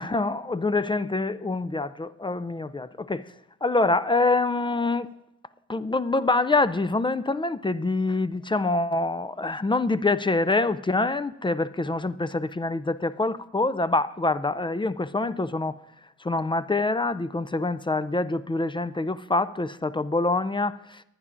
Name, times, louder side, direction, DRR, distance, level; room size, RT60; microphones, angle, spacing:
voice 1, 0.0-3.3 3.6-5.1 5.7-15.8 16.2-21.0, left 2 dB, 15° left, 0.3 m, -25 dB
23.0 x 9.6 x 2.5 m
wide cardioid pair, 100°, 32 cm